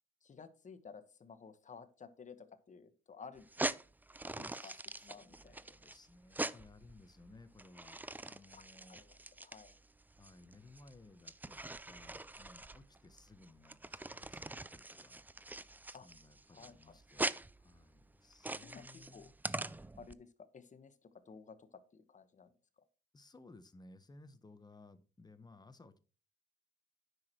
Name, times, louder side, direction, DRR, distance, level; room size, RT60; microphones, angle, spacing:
voice 1, 0.2-3.5 4.4-5.6 8.5-8.6 8.9-9.7 15.9-16.1 16.5-16.9 18.6-19.3 20.0-22.5, left 5 dB, 40° left, 10 dB, 1.3 m, -54 dB
sound 1, 3.4-20.1, right 2 dB, 10° right, 0.4 m, -43 dB
voice 2, 4.5-9.0 10.2-17.3 17.6-19.3 23.1-26.0, left 2 dB, 20° left, 11 dB, 1.1 m, -60 dB
9.5 x 6.2 x 4.5 m, 0.35 s
cardioid pair, 90°, 20 cm